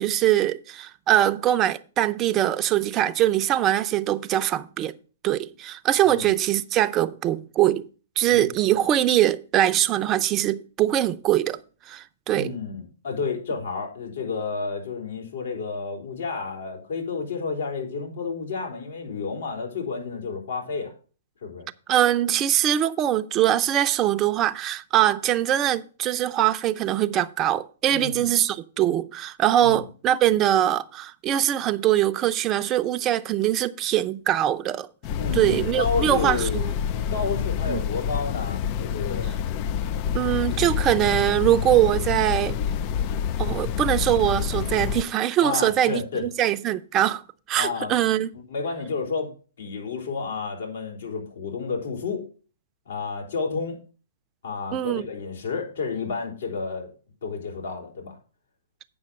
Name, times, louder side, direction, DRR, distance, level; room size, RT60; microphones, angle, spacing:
voice 1, 0.0-4.9 5.2-7.9 8.2-11.6 11.9-12.5 21.9-34.9 35.3-36.7 37.7-37.8 40.1-42.6 43.4-47.2 47.5-48.3 54.7-55.1, right 12 dB, 25° right, 0.6 m, -22 dB
voice 2, 12.3-20.9 21.4-21.7 27.9-28.3 29.6-29.8 35.2-36.6 37.1-39.3 40.5-40.6 45.4-46.2 47.6-47.9 48.5-49.3 49.6-52.2 52.9-53.8 54.4-56.9 57.2-58.2, left 4 dB, 70° left, 4.1 m, -31 dB
sound 1, 35.0-45.0, left 8 dB, 40° left, 0.4 m, -27 dB
8.7 x 6.2 x 6.2 m
hypercardioid pair, 125°, 0 cm